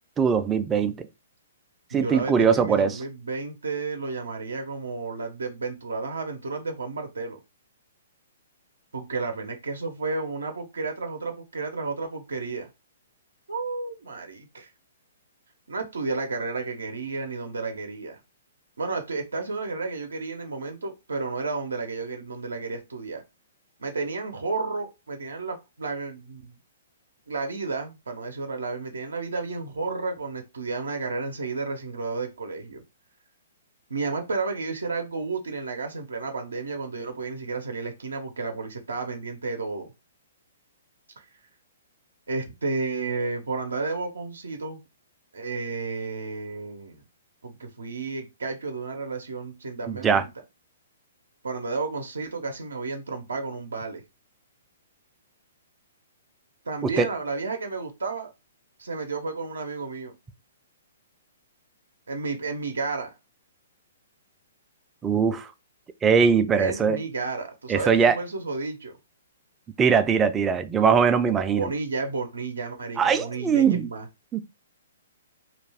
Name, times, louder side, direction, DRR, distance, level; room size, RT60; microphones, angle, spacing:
voice 1, 0.2-1.1 1.9-3.0 49.9-50.2 56.8-57.1 65.0-65.5 66.0-67.0 67.7-68.2 69.8-71.7 73.0-73.9 74.3-74.4, right 6 dB, 15° right, 0.3 m, -21 dB
voice 2, 1.9-7.4 8.9-12.7 13.5-14.7 15.7-18.2 18.8-23.2 23.8-26.6 27.3-32.8 33.9-39.9 42.3-44.8 45.3-47.0 47.4-50.3 51.4-54.0 56.6-58.3 58.8-60.1 62.1-63.1 66.6-68.9 71.3-74.1, right 3 dB, 90° right, 0.6 m, -32 dB
2.4 x 2.2 x 3.3 m
hypercardioid pair, 135°, 0 cm